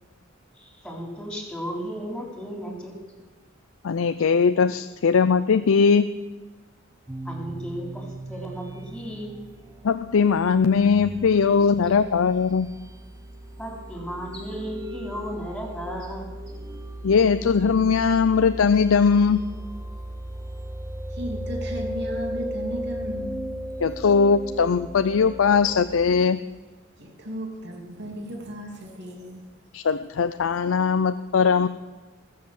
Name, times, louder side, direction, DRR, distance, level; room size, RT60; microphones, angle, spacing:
voice 1, 0.6-2.9 7.2-9.4 13.6-16.3, equal, 5° left, -1 dB, 3.8 m, -35 dB
voice 2, 3.8-6.1 9.8-12.8 17.0-19.4 23.8-26.4 29.7-31.7, left 5 dB, 80° left, 11 dB, 0.5 m, -20 dB
sound 1, 7.1-26.3, right 1 dB, 15° right, 0.7 m, -36 dB
voice 3, 21.1-23.4 27.0-29.5, equal, 55° right, 2 dB, 2.6 m, -35 dB
20.0 x 7.6 x 7.6 m, 1.2 s
head